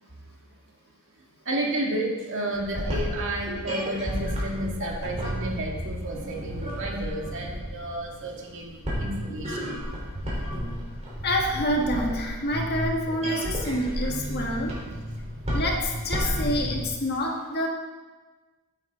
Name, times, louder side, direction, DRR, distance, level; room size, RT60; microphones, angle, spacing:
voice 1, 1.5-9.8, right 1 dB, 60° right, -1 dB, 2.2 m, -31 dB
sound 1, 2.5-16.9, equal, 30° right, 4.0 m, -32 dB
voice 2, 11.2-14.8 15.5-17.7, equal, 50° left, 0 dB, 1.8 m, -27 dB
15.0 x 9.0 x 3.9 m, 1.3 s
head